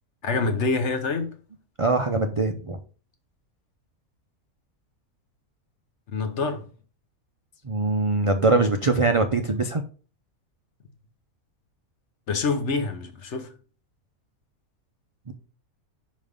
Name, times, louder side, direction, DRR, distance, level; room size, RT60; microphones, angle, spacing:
voice 1, 0.2-1.3 6.1-6.7 12.3-13.5, left 4 dB, 55° left, 1.2 m, -26 dB
voice 2, 1.8-2.8 7.6-9.8 15.3-15.4, right 3 dB, 45° right, 0.4 m, -22 dB
5.4 x 5.3 x 5.1 m
omnidirectional pair, 1.5 m